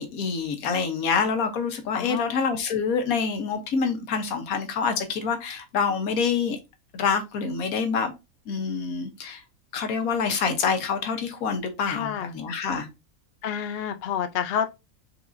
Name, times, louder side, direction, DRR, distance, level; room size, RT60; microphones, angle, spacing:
voice 1, 0.0-6.6 6.9-8.1 8.5-9.4 9.7-12.9, left 5 dB, 80° left, 1.3 m, -26 dB
voice 2, 11.9-12.3 13.4-14.7, left 8 dB, 60° left, 0.6 m, -29 dB
4.6 x 3.7 x 2.5 m
omnidirectional pair, 1.5 m